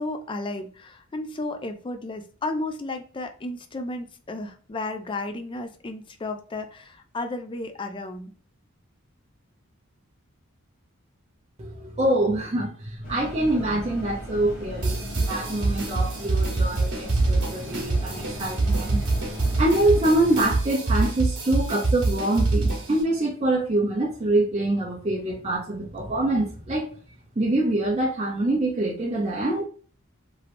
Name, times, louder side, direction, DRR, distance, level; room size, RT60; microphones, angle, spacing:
voice 1, 0.0-8.3, left 2 dB, 25° left, 0.4 m, -33 dB
voice 2, 11.6-19.0 19.6-26.9 27.4-29.6, right 1 dB, 30° right, 0.5 m, -25 dB
sound 1, 13.0-20.5, equal, 40° left, 1.3 m, -37 dB
sound 2, 14.8-23.0, right 3 dB, 55° right, 1.1 m, -25 dB
3.0 x 2.9 x 2.5 m
head